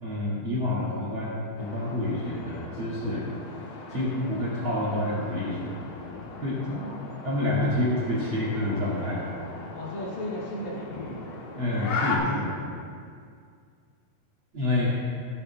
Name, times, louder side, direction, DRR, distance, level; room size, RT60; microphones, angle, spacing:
voice 1, 0.0-3.2 3.9-5.7 6.4-6.6 7.2-9.2 11.5-12.6 14.5-14.9, left 1 dB, 60° right, -8 dB, 1.3 m, -28 dB
sound 1, 1.6-12.2, left 4 dB, 75° left, 3.0 m, -38 dB
voice 2, 6.6-7.1 7.4-7.8 9.7-11.2 13.2-13.3, left 1 dB, 45° left, -7 dB, 3.5 m, -37 dB
15.5 x 10.0 x 2.2 m, 2.2 s
omnidirectional pair, 5.5 m